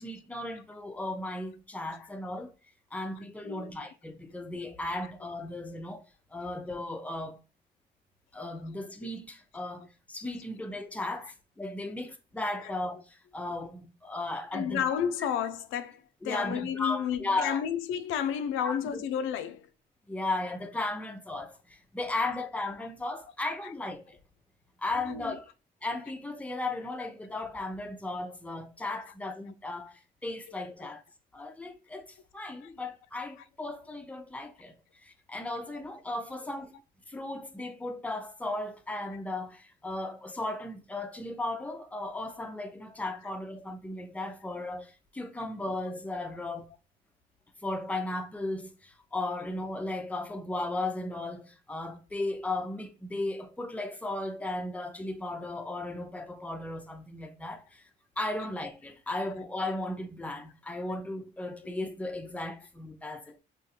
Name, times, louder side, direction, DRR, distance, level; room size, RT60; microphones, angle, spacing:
voice 1, 0.0-2.5 2.9-6.0 6.3-7.4 8.3-13.0 13.3-14.8 16.2-17.6 18.6-19.0 20.1-21.6 21.9-24.2 24.8-25.4 25.8-31.0 31.3-32.0 32.3-34.7 35.1-36.7 37.1-46.7 47.6-57.6 58.2-63.4, left 2 dB, 5° left, 0.5 m, -36 dB
voice 2, 14.5-19.7 23.6-23.7 25.0-25.4 30.5-30.6 32.6-32.7 36.3-36.4, left 8 dB, 90° left, 0.4 m, -32 dB
3.6 x 2.4 x 2.8 m
cardioid pair, 90°, 20 cm